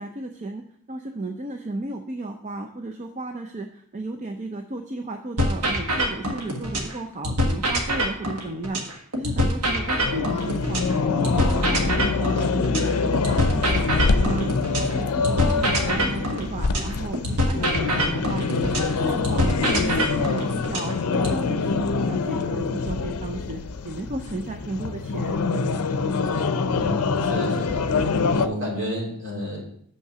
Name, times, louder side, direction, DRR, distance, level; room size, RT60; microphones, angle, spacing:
voice 1, 0.0-10.8 11.1-25.8, right 2 dB, 35° right, 5 dB, 0.5 m, -34 dB
sound 1, 5.4-6.9 7.2-10.9 11.2-14.9 15.2-18.9 19.2-21.4, equal, 85° right, 1.4 m, -25 dB
sound 2, 9.6-16.6, left 2 dB, 5° left, 1.2 m, -33 dB
sound 3, 10.0-28.5, left 4 dB, 80° left, 0.5 m, -25 dB
voice 2, 26.7-27.9 28.3-29.7, equal, 55° right, -2 dB, 2.7 m, -31 dB
5.8 x 5.6 x 6.7 m, 0.67 s
head